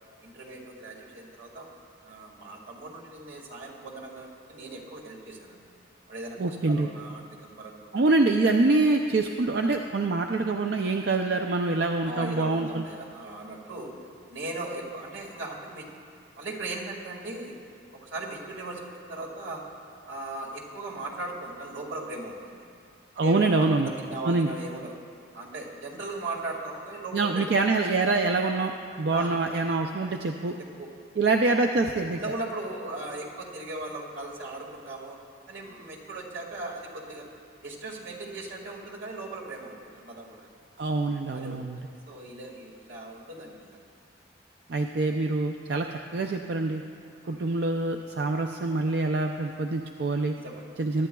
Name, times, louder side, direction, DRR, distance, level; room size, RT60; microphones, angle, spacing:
voice 1, 0.2-1.7 2.0-5.6 6.1-7.9 12.1-13.9 14.3-15.9 16.4-17.6 17.9-19.6 20.0-22.6 23.2-24.9 25.3-27.6 29.1-29.4 30.8-30.9 31.2-31.3 32.2-35.2 35.5-37.3 37.6-40.5 41.3-43.8 47.2-47.5 50.3-50.7, right 2 dB, 85° right, -2 dB, 2.0 m, -38 dB
voice 2, 6.4-6.9 7.9-12.8 23.2-23.9 24.2-24.5 27.1-28.7 29.0-30.6 31.2-32.2 40.8-41.8 44.7-46.8 47.3-50.3 50.8-51.1, right 3 dB, 60° right, 3 dB, 0.4 m, -25 dB
22.5 x 11.0 x 2.3 m, 2.4 s
head